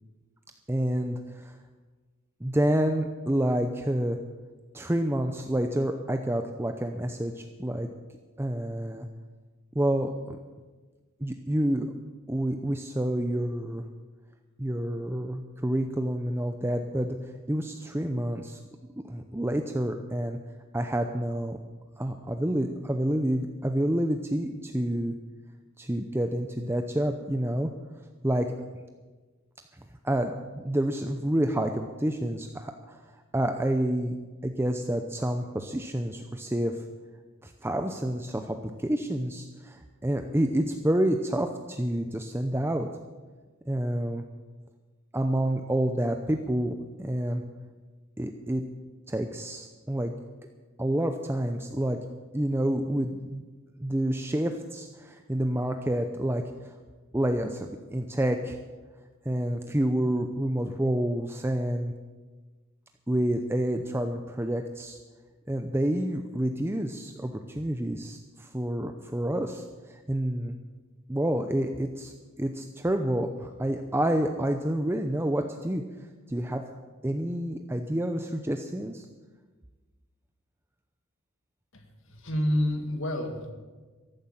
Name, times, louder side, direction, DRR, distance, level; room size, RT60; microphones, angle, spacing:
voice 1, 0.7-1.6 2.4-4.2 4.7-7.9 8.4-9.1 9.7-10.4 11.2-11.9 12.3-13.8 14.6-18.6 19.0-20.4 20.7-21.6 22.0-25.1 25.8-27.7 28.2-28.5 30.0-33.0 33.3-34.2 34.4-36.8 37.4-42.9 43.7-44.2 45.1-47.4 48.2-48.6 49.1-50.1 50.8-52.0 52.3-53.4 53.8-56.7 57.1-58.6 59.2-61.9 63.1-65.0 65.5-70.6 71.1-72.1 72.4-75.8 76.3-76.6 77.0-79.1, right 1 dB, 10° right, 5 dB, 0.6 m, -28 dB
voice 2, 82.1-83.5, left 1 dB, 60° left, 5 dB, 2.0 m, -28 dB
14.5 x 11.5 x 7.4 m, 1.3 s
head